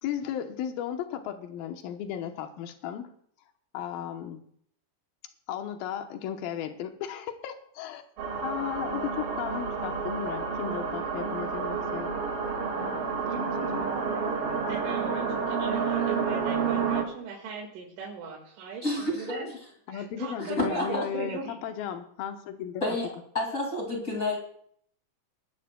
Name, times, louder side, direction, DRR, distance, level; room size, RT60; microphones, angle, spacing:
voice 1, 0.0-3.1 3.7-4.4 5.5-8.0 8.4-12.1 12.7-13.8 19.9-22.8, left 9 dB, 75° left, 6 dB, 2.2 m, -35 dB
sound 1, 8.2-17.0, right 5 dB, 55° right, 3.5 m, -30 dB
voice 2, 13.2-18.8 19.2-19.5 19.9-21.5, right 4 dB, 85° right, -1 dB, 4.3 m, -38 dB
voice 3, 18.8-19.3 20.4-20.9 22.8-23.1 23.3-24.4, left 1 dB, 25° left, -1 dB, 1.7 m, -29 dB
21.5 x 12.5 x 2.3 m, 0.66 s
omnidirectional pair, 5.3 m